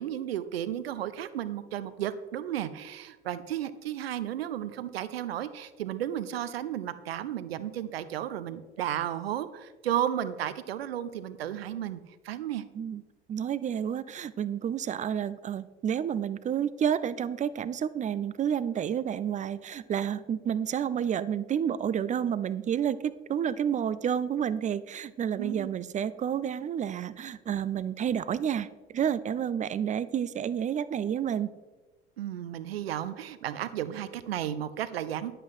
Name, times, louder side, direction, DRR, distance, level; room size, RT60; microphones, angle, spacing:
voice 1, 0.0-12.6 25.4-25.7 32.2-35.3, right 11 dB, 75° right, 14 dB, 0.7 m, -33 dB
voice 2, 13.3-28.7 28.9-31.5, right 8 dB, 25° right, 16 dB, 0.5 m, -30 dB
10.5 x 7.7 x 4.8 m, 1.2 s
figure-of-eight pair, 65°, 31 cm